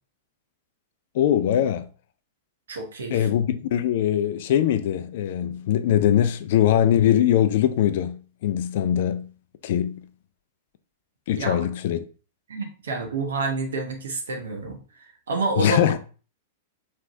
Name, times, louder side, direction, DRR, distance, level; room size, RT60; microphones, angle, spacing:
voice 1, 1.1-1.9 3.1-9.3 9.6-10.0 11.3-12.0 15.6-16.0, left 10 dB, 55° left, 0.4 m, -22 dB
voice 2, 2.7-3.3 11.3-11.6 12.5-15.8, right 3 dB, 65° right, 1.1 m, -29 dB
5.0 x 3.3 x 2.6 m
figure-of-eight pair, 100°, 0 cm